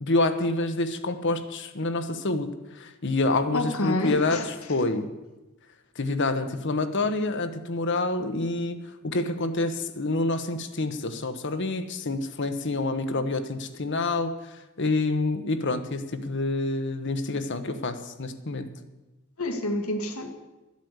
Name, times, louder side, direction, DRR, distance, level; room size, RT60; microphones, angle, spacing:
voice 1, 0.0-4.4 4.7-5.1 6.0-8.8 9.0-14.3 14.8-18.7, left 2 dB, 55° left, 8 dB, 1.1 m, -27 dB
voice 2, 3.5-4.5 19.4-20.3, left 1 dB, 75° left, 6 dB, 1.8 m, -28 dB
12.5 x 8.4 x 8.1 m, 1.1 s
head